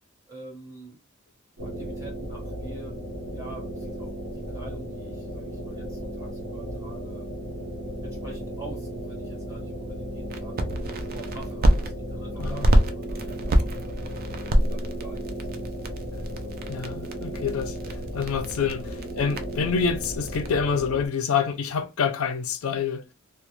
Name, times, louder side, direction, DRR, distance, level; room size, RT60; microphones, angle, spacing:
voice 1, 0.3-1.0 1.6-2.9 3.3-7.3 8.0-10.6 11.1-14.0 14.6-16.5 18.8-19.0, right 2 dB, 15° right, 1.4 m, -45 dB
sound 1, 1.6-21.1, equal, 65° right, 1.0 m, -35 dB
sound 2, 10.3-11.9 12.4-20.5, equal, 45° right, 0.4 m, -26 dB
voice 2, 16.7-17.8 18.1-18.8 19.2-23.0, left 6 dB, 75° left, 0.4 m, -27 dB
2.3 x 2.2 x 2.9 m
head